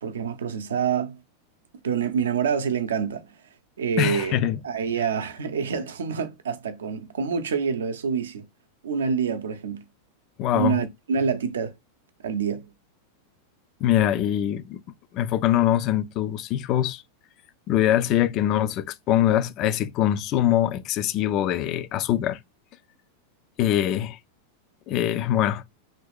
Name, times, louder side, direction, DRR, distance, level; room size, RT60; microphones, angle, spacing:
voice 1, 0.0-1.2 1.8-3.2 3.8-4.4 4.6-8.4 8.8-9.8 10.5-11.7 12.2-12.7, right 6 dB, 65° right, 0.5 m, -26 dB
voice 2, 4.0-4.6 10.4-10.8 13.8-14.8 15.1-17.0 17.7-22.4 23.6-24.2 24.9-25.6, left 12 dB, 35° left, 0.3 m, -23 dB
2.9 x 2.6 x 3.5 m
figure-of-eight pair, 90°, 0 cm